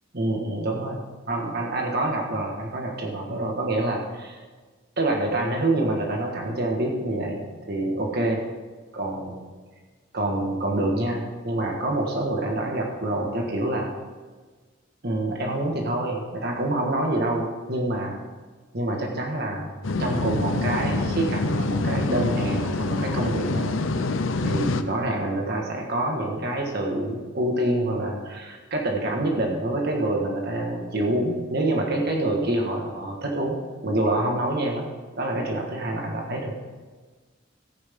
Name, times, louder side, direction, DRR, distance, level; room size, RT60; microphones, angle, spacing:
voice 1, 0.1-4.4 5.0-7.3 7.7-8.4 8.9-9.5 10.1-13.9 15.0-18.1 18.7-19.7 20.0-23.8 24.4-33.6 33.8-34.8 35.2-36.5, right 1 dB, 55° right, 1 dB, 1.6 m, -26 dB
sound 1, 19.8-24.8, left 2 dB, 90° left, 0.7 m, -26 dB
14.0 x 9.7 x 3.7 m, 1.4 s
head